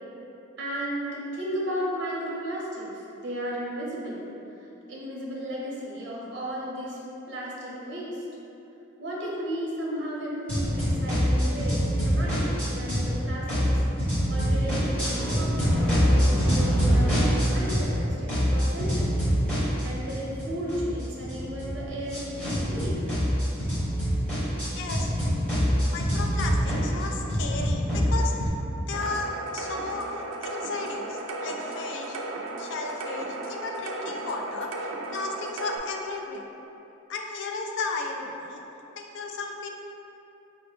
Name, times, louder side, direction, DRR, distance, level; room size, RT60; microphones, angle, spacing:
voice 1, 0.6-4.2 4.9-7.0 7.3-8.3 9.0-13.8 14.3-19.2 19.6-23.0, equal, 60° right, -5 dB, 0.6 m, -34 dB
sound 1, 10.5-13.1 13.5-18.0 18.3-28.5, equal, 5° left, 0.9 m, -25 dB
voice 2, 24.7-25.1 25.8-28.6 28.9-32.2 32.6-36.5 37.1-38.6 39.0-39.7, left 3 dB, 65° left, 2 dB, 0.3 m, -34 dB
sound 2, 28.9-35.8, right 2 dB, 85° right, 0.3 m, -35 dB
4.0 x 2.0 x 3.0 m, 2.9 s
head